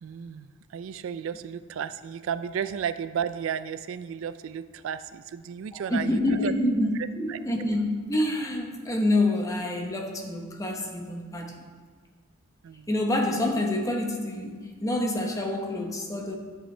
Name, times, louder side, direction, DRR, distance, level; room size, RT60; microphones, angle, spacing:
voice 1, 0.0-6.5 7.3-7.4 12.6-12.9, right 8 dB, 70° right, 13 dB, 0.3 m, -33 dB
voice 2, 5.7-11.7 12.9-16.4, left 1 dB, 15° left, 1 dB, 1.0 m, -27 dB
12.0 x 7.9 x 3.3 m, 1.5 s
head